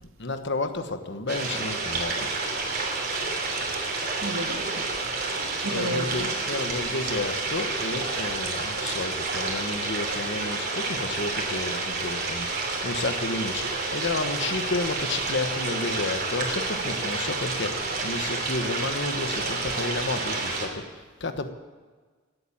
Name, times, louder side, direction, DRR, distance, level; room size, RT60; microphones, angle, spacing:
voice 1, 0.0-2.3 5.7-21.5, left 3 dB, 55° left, 1.2 m, -31 dB
sound 1, 1.3-20.7, right 3 dB, 50° right, 3.1 m, -29 dB
voice 2, 3.7-5.0 5.6-6.3, right 1 dB, 75° right, 1.7 m, -34 dB
18.0 x 8.8 x 8.7 m
head